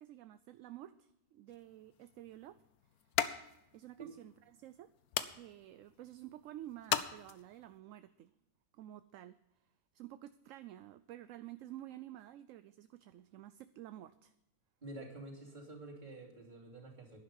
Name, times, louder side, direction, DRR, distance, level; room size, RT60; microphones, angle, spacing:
voice 1, 0.0-2.6 3.7-4.9 5.2-8.3 8.7-9.4 9.9-14.3, right 13 dB, 70° right, 12 dB, 0.9 m, -51 dB
sound 1, 1.5-7.8, left 10 dB, 85° left, 1.2 m, -41 dB
voice 2, 14.8-17.2, right 2 dB, 30° right, -3 dB, 3.1 m, -49 dB
11.5 x 10.5 x 5.4 m, 0.85 s
omnidirectional pair, 1.6 m